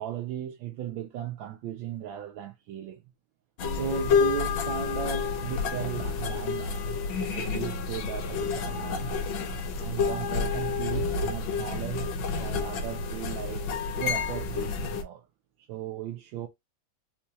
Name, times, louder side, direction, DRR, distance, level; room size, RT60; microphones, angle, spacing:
voice 1, 0.0-3.0 3.7-7.0 7.3-9.1 9.8-13.6 13.9-15.3 15.6-16.5, right 11 dB, 80° right, 1.3 m, -37 dB
sound 1, 3.6-15.0, left 5 dB, 85° left, 1.5 m, -29 dB
4.3 x 2.3 x 2.6 m
omnidirectional pair, 2.1 m